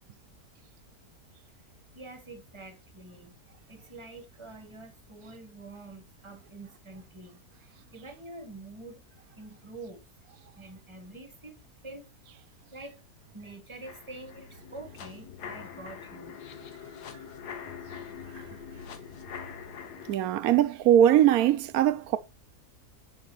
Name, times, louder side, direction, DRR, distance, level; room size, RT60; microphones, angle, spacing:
voice 1, 1.9-3.3 3.7-9.0 9.4-10.0 10.6-12.1 12.7-13.0 13.3-16.3 19.6-19.7 19.9-20.1, right 2 dB, 20° right, 1.0 m, -46 dB
sound 1, 13.8-20.2, left 7 dB, 90° left, 1.6 m, -43 dB
voice 2, 20.1-22.2, right 11 dB, 75° right, 1.0 m, -21 dB
7.2 x 6.5 x 3.0 m
omnidirectional pair, 1.7 m